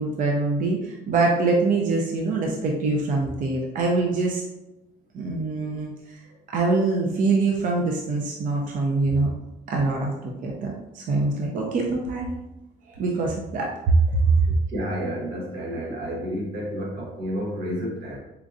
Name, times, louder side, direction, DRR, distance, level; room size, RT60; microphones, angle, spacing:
voice 1, 0.0-4.4 5.1-6.2 6.5-9.3 9.7-12.3 12.9-14.4, right 3 dB, 50° right, -1 dB, 0.6 m, -24 dB
voice 2, 14.7-18.2, equal, 85° right, -2 dB, 1.1 m, -30 dB
4.3 x 2.5 x 2.5 m, 0.96 s
cardioid pair, 110°, 17 cm